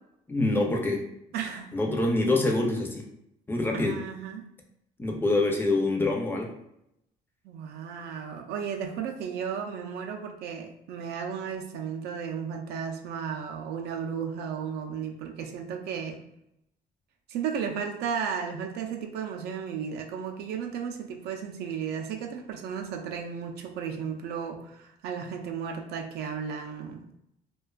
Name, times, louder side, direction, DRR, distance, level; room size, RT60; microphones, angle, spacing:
voice 1, 0.3-1.1 1.7-3.1 3.5-4.0 5.0-6.5, left 2 dB, 15° left, 0 dB, 0.4 m, -25 dB
voice 2, 1.3-1.7 3.7-4.5 7.4-16.2 17.3-27.1, right 7 dB, 75° right, 3 dB, 0.4 m, -34 dB
2.5 x 2.2 x 2.2 m, 0.79 s
cardioid pair, 110°, 17 cm